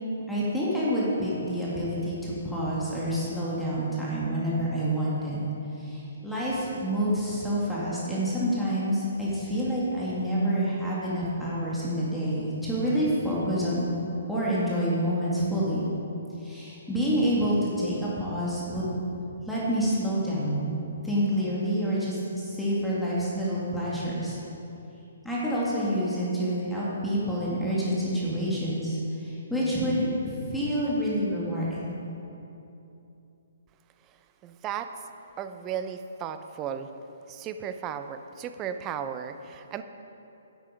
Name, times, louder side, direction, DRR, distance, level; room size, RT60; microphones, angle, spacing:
voice 1, 0.3-5.5 5.8-14.0 14.3-15.9 16.4-18.9 19.2-20.7 21.0-24.4 25.2-31.9, equal, ahead, -9 dB, 2.2 m, -28 dB
voice 2, 34.4-34.9 35.4-36.9 37.3-39.8, right 8 dB, 25° right, 9 dB, 0.5 m, -35 dB
10.5 x 8.5 x 5.1 m, 2.9 s
hypercardioid pair, 135°, 0 cm